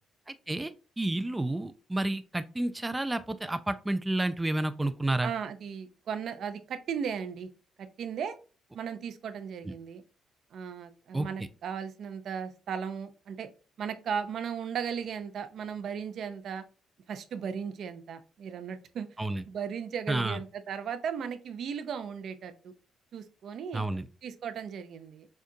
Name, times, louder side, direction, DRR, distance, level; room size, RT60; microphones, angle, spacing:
voice 1, 0.3-5.3 9.6-9.7 11.1-11.5 19.2-19.4 20.1-20.4 23.7-24.1, right 2 dB, 15° right, 11 dB, 0.3 m, -30 dB
voice 2, 5.2-7.5 7.8-8.3 8.7-10.0 10.5-13.5 13.8-16.6 17.1-19.1 19.5-22.7 23.1-23.8 24.2-25.3, right 7 dB, 65° right, 10 dB, 0.5 m, -36 dB
6.3 x 2.3 x 2.7 m, 0.35 s
cardioid pair, 90°, 0 cm